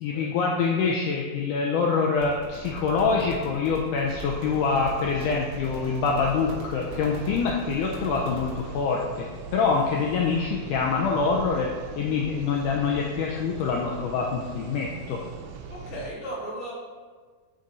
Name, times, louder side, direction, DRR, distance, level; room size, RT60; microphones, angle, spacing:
voice 1, 0.0-9.2 9.5-11.7 12.0-15.2, left 5 dB, 80° left, -1 dB, 1.8 m, -25 dB
sound 1, 2.1-8.6, right 3 dB, 60° right, 1.4 m, -40 dB
sound 2, 4.1-16.1, right 5 dB, 80° right, 1.9 m, -41 dB
voice 2, 15.7-16.7, equal, 55° left, -6 dB, 0.8 m, -36 dB
6.6 x 4.9 x 4.1 m, 1.5 s
omnidirectional pair, 4.2 m